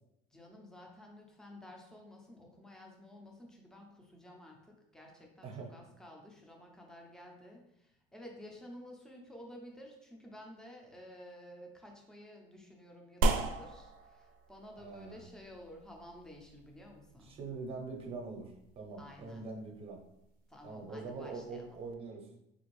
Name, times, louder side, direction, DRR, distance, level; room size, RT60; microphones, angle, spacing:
voice 1, 0.3-17.4 19.0-19.5 20.5-21.8, left 1 dB, 5° left, 1 dB, 0.5 m, -52 dB
sound 1, 13.2-21.9, right 2 dB, 80° right, 0.4 m, -39 dB
voice 2, 14.8-15.2 17.2-20.0 20.6-22.3, right 3 dB, 35° right, 2 dB, 0.7 m, -43 dB
3.8 x 2.5 x 3.1 m, 0.82 s
cardioid pair, 150°, 17 cm